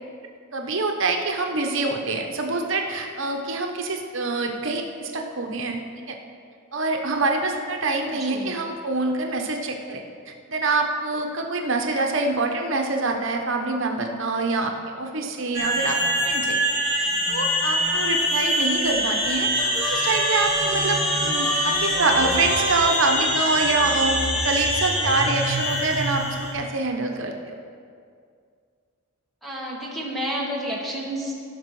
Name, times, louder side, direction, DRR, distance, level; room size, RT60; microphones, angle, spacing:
voice 1, 0.5-5.8 6.1-6.2 6.7-16.0 16.2-16.6 17.0-19.5 19.9-27.5, right 3 dB, 60° right, 3 dB, 1.0 m, -25 dB
voice 2, 8.1-8.6 29.4-31.3, equal, ahead, -4 dB, 1.6 m, -30 dB
sound 1, 15.5-26.5, equal, 45° left, 2.9 m, -24 dB
Harmonica, 19.5-23.8, right 1 dB, 15° right, 1.5 m, -31 dB
16.5 x 6.1 x 4.8 m, 2.2 s
head